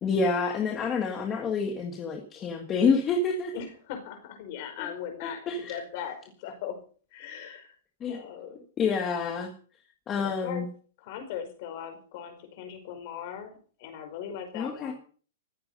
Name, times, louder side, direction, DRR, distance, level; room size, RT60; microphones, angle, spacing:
voice 1, 0.0-3.5 4.8-4.9 5.2-5.8 8.0-8.2 8.8-9.5 10.1-10.7 14.5-14.9, left 5 dB, 15° left, 3 dB, 1.6 m, -28 dB
voice 2, 3.5-5.4 5.7-6.8 7.1-7.7 8.1-8.6 10.2-10.6 11.0-14.9, left 8 dB, 35° left, 7 dB, 4.9 m, -39 dB
15.0 x 14.5 x 5.4 m, 0.43 s
supercardioid pair, 180°, 0 cm